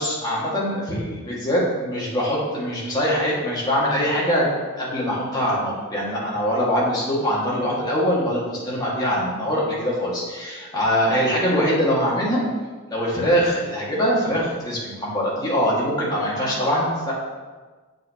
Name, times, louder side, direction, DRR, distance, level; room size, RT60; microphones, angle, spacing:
voice 1, 0.0-12.4 12.9-17.1, equal, 20° left, -7 dB, 2.2 m, -23 dB
8.0 x 7.6 x 3.1 m, 1.4 s
head